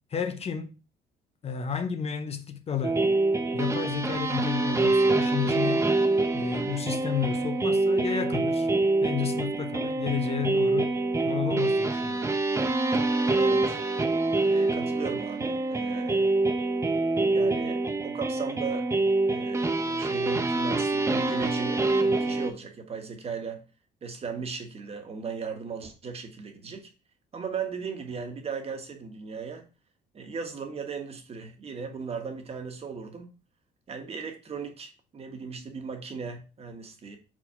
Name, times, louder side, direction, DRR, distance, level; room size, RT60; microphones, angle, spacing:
voice 1, 0.1-0.7 1.4-3.1 3.5-5.9 6.3-8.7 9.0-12.3, left 8 dB, 35° left, 0.6 m, -32 dB
sound 1, 2.8-22.5, right 2 dB, 15° right, 0.7 m, -25 dB
voice 2, 13.4-13.8 14.5-16.5 17.3-18.9 19.2-23.7 24.0-26.9 27.3-29.6 30.1-33.3 33.9-37.2, right 5 dB, 35° right, 1.4 m, -37 dB
4.6 x 4.0 x 5.6 m
cardioid pair, 110°, 17 cm